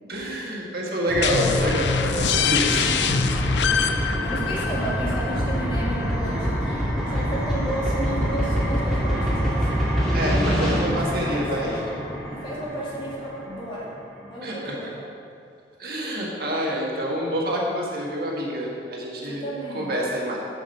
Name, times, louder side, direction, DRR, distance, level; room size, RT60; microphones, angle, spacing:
voice 1, 0.1-3.0 10.1-11.8 14.4-14.8 15.8-19.4 19.7-20.4, equal, 55° right, -3 dB, 1.7 m, -27 dB
sound 1, 1.1-13.8, equal, ahead, 2.0 m, -26 dB
sound 2, 1.2-6.7, left 6 dB, 80° left, 0.5 m, -25 dB
voice 2, 4.2-9.9 10.1-11.5 12.3-13.9 14.2-14.9 19.3-19.9, right 1 dB, 30° left, -7 dB, 2.5 m, -33 dB
8.7 x 6.4 x 6.5 m, 2.4 s
head